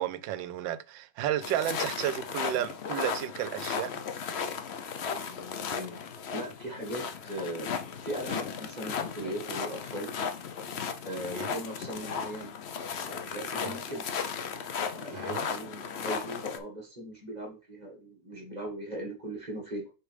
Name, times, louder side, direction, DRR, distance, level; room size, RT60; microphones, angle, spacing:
voice 1, 0.0-4.0 11.3-11.5 13.6-13.7 15.1-15.5, right 11 dB, 80° right, 1.3 m, -32 dB
sound 1, 1.4-16.6, left 6 dB, 85° left, 0.5 m, -35 dB
voice 2, 5.3-6.0 6.3-10.1 11.0-12.5 13.0-14.2 14.9-19.9, right 1 dB, 25° right, 1.7 m, -39 dB
6.7 x 5.0 x 3.4 m
omnidirectional pair, 2.0 m